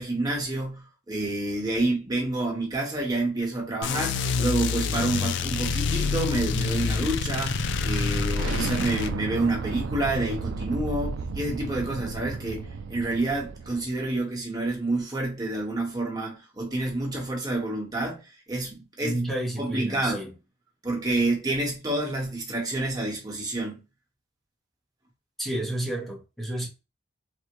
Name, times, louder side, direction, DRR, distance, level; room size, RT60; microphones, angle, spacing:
voice 1, 0.0-18.2 18.5-19.2 19.6-20.3 20.8-23.8, right 2 dB, 20° right, 1.0 m, -28 dB
sound 1, 3.7-13.9, right 4 dB, 65° right, 0.3 m, -35 dB
sound 2, 3.8-9.1, left 5 dB, 60° left, 0.3 m, -27 dB
voice 2, 19.0-20.3 25.4-26.7, right 1 dB, ahead, 0.7 m, -30 dB
3.4 x 2.1 x 2.9 m
head